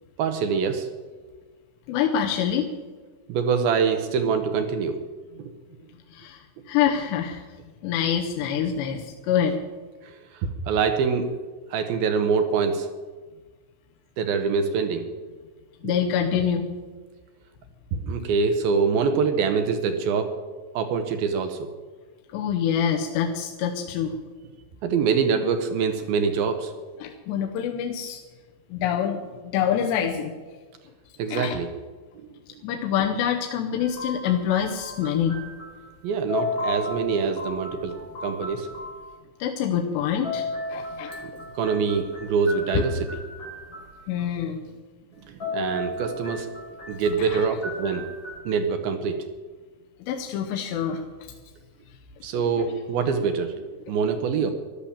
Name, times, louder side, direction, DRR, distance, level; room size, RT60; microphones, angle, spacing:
voice 1, 0.2-0.9 3.3-5.0 5.4-5.5 10.0-11.3 11.7-12.9 14.2-15.1 15.8-15.9 17.9-20.3 20.7-21.7 24.8-26.7 31.2-31.7 36.0-37.9 38.2-38.7 41.2-43.2 45.3-46.5 46.9-48.1 48.4-49.3 52.2-54.5, right 5 dB, 75° right, 7 dB, 2.5 m, -25 dB
voice 2, 1.9-2.7 6.1-7.4 7.8-9.6 15.8-16.7 22.3-24.1 27.0-28.2 28.7-30.3 31.3-31.6 32.6-35.4 39.4-41.2 42.7-42.8 44.1-44.6 47.2-47.5 50.1-51.0 52.3-52.7, left 8 dB, 85° left, 2 dB, 3.1 m, -26 dB
sound 1, 33.8-36.0 36.3-39.0 40.0-44.3 45.2-48.4, left 2 dB, 25° left, 5.1 m, -35 dB
13.5 x 12.0 x 7.2 m, 1.4 s
omnidirectional pair, 4.9 m